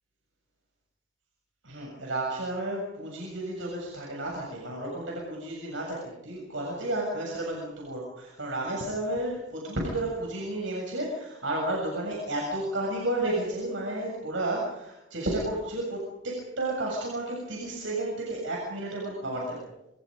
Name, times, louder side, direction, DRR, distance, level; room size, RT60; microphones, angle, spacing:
voice 1, 1.6-19.7, right 1 dB, 70° right, -2 dB, 7.5 m, -32 dB
28.0 x 27.5 x 5.3 m, 0.86 s
head